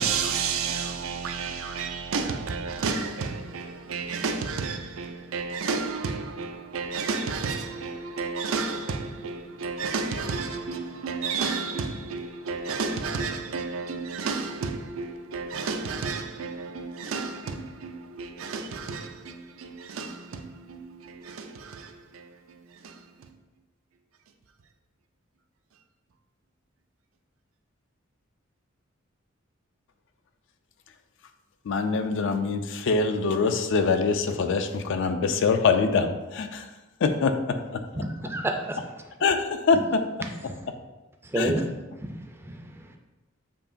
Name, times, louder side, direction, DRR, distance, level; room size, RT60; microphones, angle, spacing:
voice 1, 0.0-22.6 22.8-23.3, right 4 dB, 80° right, 0.5 m, -32 dB
voice 2, 31.7-36.7 37.0-37.8 39.2-40.0 41.4-41.5, left 4 dB, 65° left, 0.4 m, -24 dB
voice 3, 37.9-38.8 40.5-40.6 41.2-41.7 41.9-43.0, right 1 dB, 10° right, 0.4 m, -30 dB
6.9 x 2.9 x 2.6 m
head